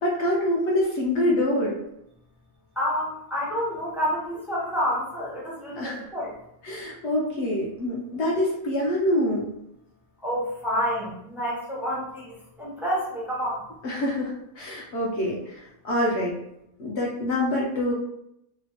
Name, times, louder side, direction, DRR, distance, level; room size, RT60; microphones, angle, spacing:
voice 1, 0.0-1.8 5.8-6.1 6.6-9.4 13.8-16.4 16.8-17.9, left 1 dB, 60° left, -4 dB, 0.8 m, -25 dB
voice 2, 2.8-6.3 10.2-13.6, equal, ahead, -7 dB, 0.4 m, -29 dB
3.0 x 2.0 x 2.8 m, 0.78 s
omnidirectional pair, 1.5 m